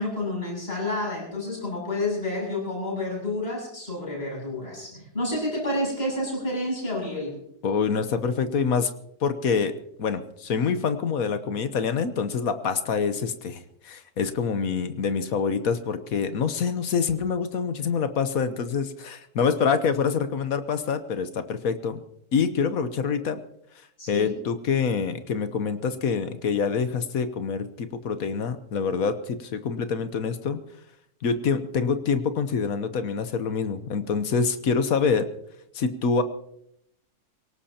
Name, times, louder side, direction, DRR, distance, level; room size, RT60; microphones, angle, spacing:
voice 1, 0.0-7.4 24.0-24.3, left 1 dB, 40° left, -3 dB, 8.1 m, -29 dB
voice 2, 7.6-8.9 9.2-9.7 10.0-22.0 22.3-23.4 24.1-30.6 31.2-35.3 35.7-36.2, left 5 dB, 65° left, 10 dB, 1.3 m, -26 dB
23.5 x 18.0 x 2.9 m, 0.75 s
omnidirectional pair, 1.7 m